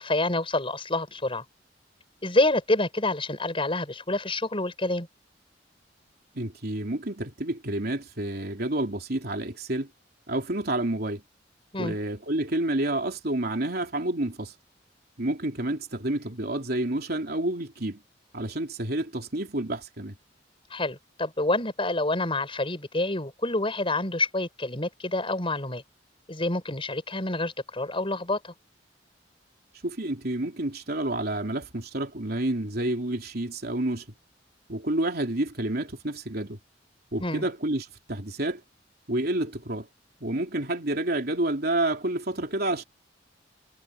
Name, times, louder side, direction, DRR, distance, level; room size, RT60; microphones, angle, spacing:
voice 1, 0.0-1.4 2.2-5.1 11.7-12.0 20.7-25.8 26.3-28.5 37.2-37.4, left 2 dB, 30° left, 6.4 m, -27 dB
voice 2, 6.3-9.9 10.3-11.2 11.8-14.5 15.2-18.0 18.3-20.1 29.8-34.0 34.7-36.6 37.1-38.6 39.1-39.9 40.2-42.8, right 1 dB, 55° right, 3.4 m, -29 dB
head